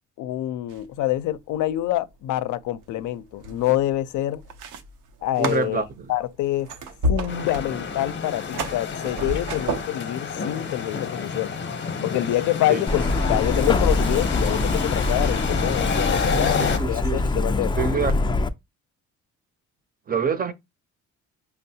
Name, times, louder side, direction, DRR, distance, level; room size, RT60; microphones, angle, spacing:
voice 1, 0.2-4.4 5.2-5.8 6.1-6.7 7.1-11.5 12.0-17.7, left 14 dB, 80° left, 0.5 m, -26 dB
sound 1, 0.7-1.1 1.4-1.8 2.5-9.8, right 1 dB, 85° right, 0.7 m, -31 dB
voice 2, 5.4-6.1 12.7-12.8 16.3-17.2 17.8-18.1 20.1-20.5, right 6 dB, 30° right, 0.6 m, -26 dB
sound 2, 7.3-16.8, left 5 dB, 40° left, 0.7 m, -29 dB
Truck, 12.9-18.5, left 3 dB, 15° left, 0.3 m, -24 dB
5.3 x 2.0 x 2.7 m
cardioid pair, 90°, 30 cm